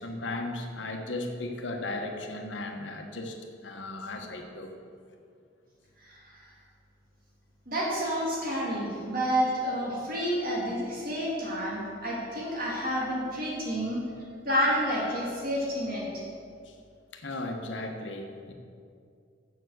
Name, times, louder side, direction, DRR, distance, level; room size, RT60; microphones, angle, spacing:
voice 1, 0.0-4.7 16.6-16.7 17.1-18.5, left 2 dB, 70° left, 3 dB, 1.1 m, -36 dB
voice 2, 7.7-14.0 14.4-16.0, equal, 50° right, -5 dB, 2.7 m, -29 dB
7.2 x 7.1 x 7.7 m, 2.3 s
head